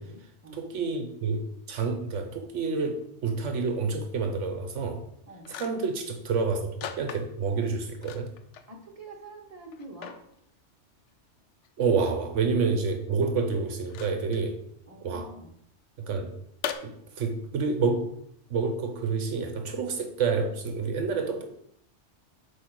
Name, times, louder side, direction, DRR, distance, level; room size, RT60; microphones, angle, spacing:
voice 1, 0.0-0.6 5.3-5.5 8.7-10.2 14.9-15.5, right 2 dB, 30° right, 1 dB, 1.3 m, -46 dB
voice 2, 0.5-5.0 5.5-8.3 11.8-14.6 15.0-15.3 16.0-16.3 16.8-18.1 18.5-21.5, right 4 dB, 80° right, 6 dB, 1.1 m, -28 dB
sound 1, 5.0-5.1 5.4-6.0 6.8-7.6 8.0-8.7 9.1-9.2 9.7-10.2 11.6-11.7 13.8-14.4 16.6-16.7, left 8 dB, 75° left, 0.9 m, -38 dB
8.4 x 2.9 x 6.0 m, 0.73 s
omnidirectional pair, 1.2 m